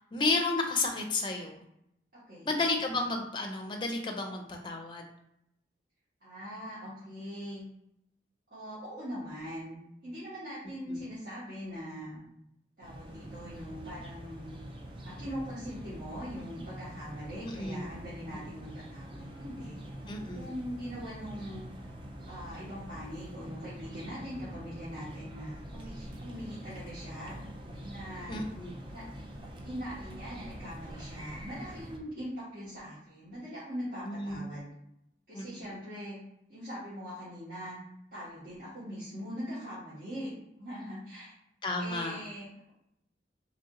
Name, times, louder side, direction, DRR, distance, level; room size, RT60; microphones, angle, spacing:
voice 1, 0.1-1.6 2.5-5.0 10.9-11.0 17.4-17.9 20.1-20.5 28.3-28.7 34.1-34.4 35.3-35.4 41.6-42.2, left 3 dB, 25° left, 3 dB, 0.5 m, -32 dB
voice 2, 2.1-2.5 6.2-7.6 8.5-12.2 12.8-14.6 15.0-19.8 20.3-21.6 22.3-27.3 27.8-28.4 28.9-29.0 29.6-34.7 35.3-36.2 36.5-37.8 38.1-40.3 40.6-41.3 41.8-42.7, equal, 55° right, -12 dB, 1.5 m, -41 dB
sound 1, 12.8-32.0, right 1 dB, 30° right, 0.4 m, -45 dB
3.4 x 2.7 x 3.7 m, 0.77 s
head